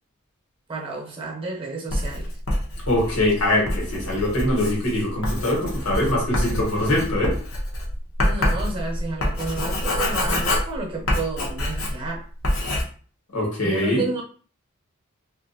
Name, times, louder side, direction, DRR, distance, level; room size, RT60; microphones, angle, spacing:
voice 1, 0.7-2.4 8.2-12.3 13.6-14.2, right 3 dB, 25° right, -1 dB, 0.8 m, -31 dB
Writing, 1.9-12.1 12.4-12.8, left 1 dB, 70° left, 0.8 m, -26 dB
voice 2, 2.9-7.3 13.3-14.0, left 1 dB, 90° left, -2 dB, 1.4 m, -23 dB
2.8 x 2.6 x 2.7 m, 0.42 s
head